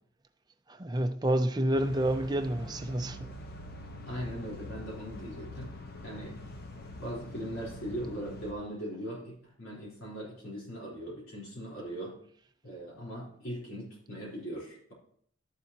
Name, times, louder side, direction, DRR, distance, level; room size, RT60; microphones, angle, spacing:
voice 1, 0.7-3.3, right 1 dB, 20° right, 0.6 m, -29 dB
sound 1, 1.7-8.5, left 1 dB, 50° left, 1.0 m, -44 dB
voice 2, 4.1-5.7 6.0-6.4 7.0-12.2 12.6-14.9, equal, 70° left, 3.9 m, -40 dB
12.5 x 7.0 x 2.9 m
head